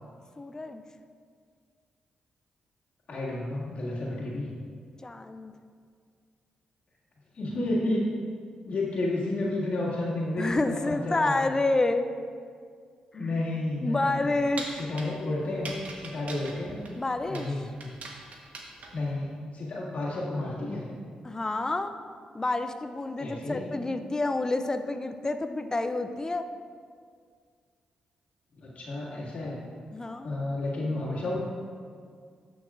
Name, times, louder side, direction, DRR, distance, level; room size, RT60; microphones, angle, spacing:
voice 1, 0.4-0.8 5.0-5.5 10.4-12.1 13.8-14.9 17.0-17.5 21.2-21.9 22.3-26.5 29.9-30.3, left 2 dB, 25° left, 8 dB, 0.4 m, -28 dB
voice 2, 3.1-4.5 7.3-8.0 8.7-11.5 13.1-14.2 14.8-15.7 16.0-16.8 17.3-17.7 18.9-20.9 23.2-23.7 28.6-29.6 30.2-31.4, left 2 dB, 65° left, -6 dB, 2.0 m, -31 dB
sound 1, 13.9-19.1, right 3 dB, 65° right, 1.1 m, -42 dB
11.5 x 6.1 x 2.5 m, 2.1 s
supercardioid pair, 55°, 3 cm